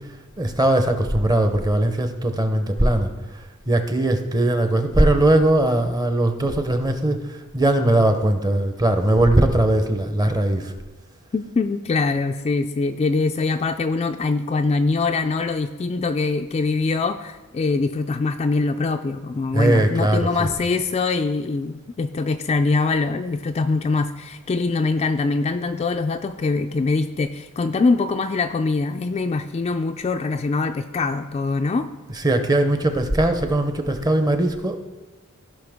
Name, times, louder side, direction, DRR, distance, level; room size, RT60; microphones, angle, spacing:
voice 1, 0.4-10.7 19.5-20.5 32.2-34.8, right 1 dB, 20° right, 7 dB, 0.7 m, -20 dB
voice 2, 11.3-31.9, left 3 dB, 30° left, 7 dB, 0.3 m, -23 dB
15.5 x 5.7 x 3.5 m, 1.2 s
head